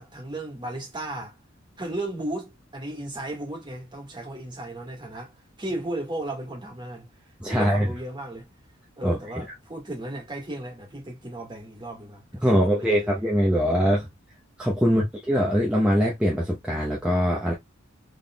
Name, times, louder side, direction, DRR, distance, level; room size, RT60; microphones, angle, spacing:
voice 1, 0.0-1.4 1.8-7.1 7.5-8.5 9.0-13.1 14.8-15.1, right 1 dB, 25° right, 1.8 m, -35 dB
voice 2, 7.4-7.9 9.0-9.4 12.4-14.1 14.6-17.5, equal, 5° right, 0.9 m, -22 dB
3.9 x 3.6 x 2.3 m
head